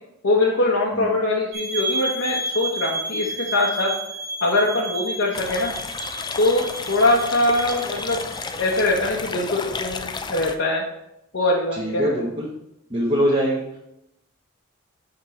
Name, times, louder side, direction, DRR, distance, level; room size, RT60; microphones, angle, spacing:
voice 1, 0.2-3.9 4.4-5.7 6.4-8.2 8.6-10.8 11.3-12.3, left 2 dB, 65° left, -2 dB, 0.9 m, -22 dB
sound 1, 1.5-8.9, right 2 dB, 65° right, 1.7 m, -31 dB
sound 2, 5.3-10.5, left 4 dB, 20° left, 0.3 m, -32 dB
voice 2, 11.7-12.5 12.9-13.8, equal, 25° right, -6 dB, 0.9 m, -23 dB
6.0 x 5.3 x 4.1 m, 0.82 s
head